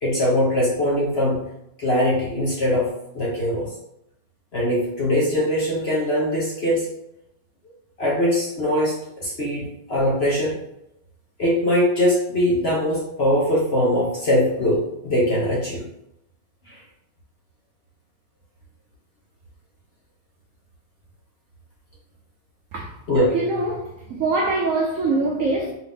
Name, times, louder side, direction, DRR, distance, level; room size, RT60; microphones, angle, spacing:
voice 1, 0.0-1.4 1.8-3.7 4.5-6.9 8.0-10.6 11.4-15.9 16.7-16.8 23.1-23.3, equal, 45° left, 0.8 m, -21 dB
voice 2, 23.3-25.7, right 3 dB, 85° right, 0.7 m, -23 dB
4.6 x 2.8 x 3.5 m
omnidirectional pair, 2.1 m